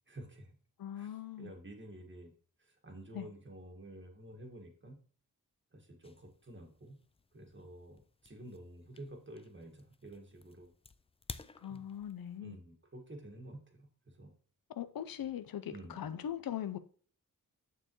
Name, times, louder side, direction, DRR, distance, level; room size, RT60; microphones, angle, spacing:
voice 1, 0.1-0.6 0.9-2.3 2.6-5.0 5.7-7.0 7.3-10.7 11.7-11.9 12.4-14.3 15.7-16.1, right 1 dB, 35° right, 1.7 m, -51 dB
voice 2, 0.8-1.5 3.1-3.3 11.6-12.6 14.7-16.8, left 10 dB, 80° left, 0.6 m, -40 dB
sound 1, 6.0-12.4, left 4 dB, 15° left, 0.4 m, -54 dB
6.7 x 6.6 x 3.0 m
cardioid pair, 70°, 35 cm